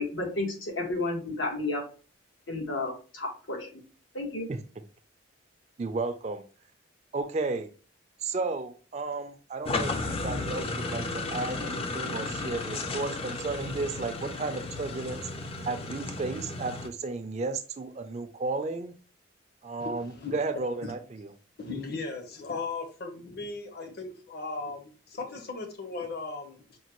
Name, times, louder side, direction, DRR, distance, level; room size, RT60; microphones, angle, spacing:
voice 1, 0.0-1.8 2.5-3.8 4.1-4.5, left 2 dB, 90° left, 0 dB, 1.3 m, -32 dB
voice 2, 5.8-6.4 7.1-7.7 8.2-15.3 15.7-18.9 19.6-21.3, right 3 dB, 35° right, 9 dB, 0.4 m, -33 dB
sound 1, 9.7-16.9, left 3 dB, 30° left, 0.4 m, -34 dB
voice 3, 19.8-20.3 20.8-20.9 21.6-26.8, left 3 dB, 55° left, 3 dB, 0.8 m, -37 dB
5.2 x 2.2 x 3.0 m, 0.37 s
head